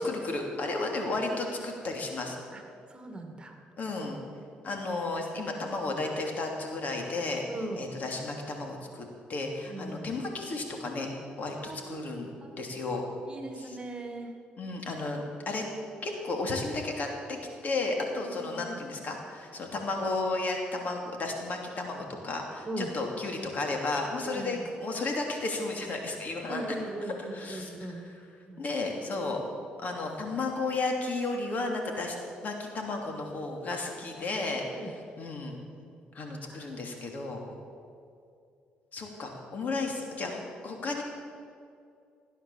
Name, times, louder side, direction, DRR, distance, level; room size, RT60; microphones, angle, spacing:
voice 1, 0.0-2.4 3.8-4.2 4.6-7.4 7.8-11.1 11.4-12.3 12.6-13.0 13.6-13.8 14.6-15.7 16.0-26.6 27.3-27.7 28.0-28.1 28.6-29.4 29.8-32.2 32.4-35.6 36.1-37.4 38.9-41.0, left 3 dB, 50° left, 2 dB, 2.9 m, -33 dB
voice 2, 2.9-3.6 7.5-7.8 9.7-10.1 11.6-12.1 12.4-12.6 13.3-14.3 18.1-18.8 22.7-22.9 24.2-24.7 26.4-28.1 28.5-28.6 29.1-29.3 34.7-35.0 36.5-36.7, right 2 dB, 25° right, 4 dB, 2.3 m, -39 dB
16.0 x 9.8 x 7.3 m, 2.4 s
supercardioid pair, 75°, 3 cm